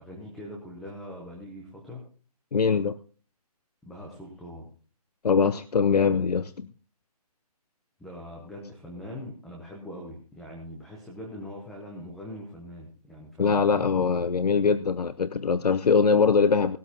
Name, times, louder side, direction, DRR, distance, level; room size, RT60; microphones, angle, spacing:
voice 1, 0.0-2.0 3.8-4.7 8.0-13.8, left 1 dB, ahead, -2 dB, 0.6 m, -42 dB
voice 2, 2.5-3.0 5.2-6.7 13.4-16.8, left 5 dB, 80° left, 14 dB, 0.7 m, -22 dB
18.0 x 12.5 x 2.8 m, 0.40 s
hypercardioid pair, 165°, 20 cm